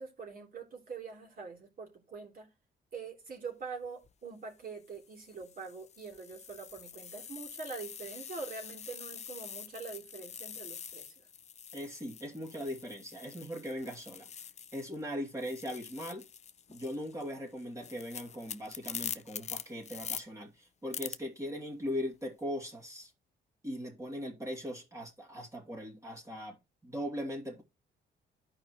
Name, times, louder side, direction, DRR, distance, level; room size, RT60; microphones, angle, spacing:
voice 1, 0.0-2.5 2.9-11.3, right 5 dB, 45° right, 3.4 m, -44 dB
sound 1, 3.9-4.1 4.9-15.0 15.3-20.2 20.9-21.2, left 7 dB, 35° left, 0.5 m, -45 dB
voice 2, 11.7-14.3 14.7-16.2 16.7-23.1 23.6-27.6, equal, 15° right, 2.5 m, -39 dB
13.5 x 4.9 x 3.0 m
cardioid pair, 90°, 20 cm